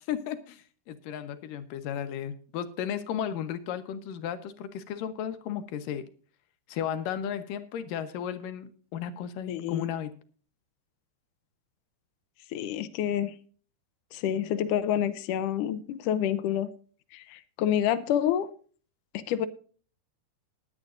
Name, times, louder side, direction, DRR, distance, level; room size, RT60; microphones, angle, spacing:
voice 1, 0.0-6.1 6.7-10.1, left 9 dB, 70° left, 2.4 m, -34 dB
voice 2, 9.5-9.9 12.5-13.3 14.1-16.7 17.1-18.5 19.1-19.5, left 10 dB, 85° left, 1.8 m, -28 dB
20.0 x 9.9 x 2.6 m
omnidirectional pair, 4.8 m